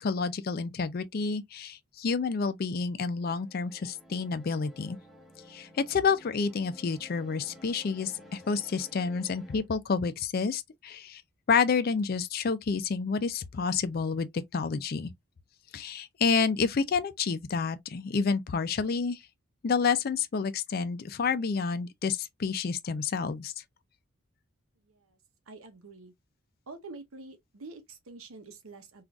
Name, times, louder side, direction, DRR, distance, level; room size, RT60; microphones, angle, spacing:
voice 1, 0.0-5.0 5.5-11.2 11.5-15.1 15.7-19.2 19.6-23.5, left 5 dB, 45° left, 0.4 m, -29 dB
sound 1, 3.3-9.7, left 1 dB, ahead, 0.6 m, -53 dB
voice 2, 24.8-25.2 25.5-26.1 26.7-29.0, right 3 dB, 90° right, 0.8 m, -47 dB
3.7 x 2.4 x 2.3 m
head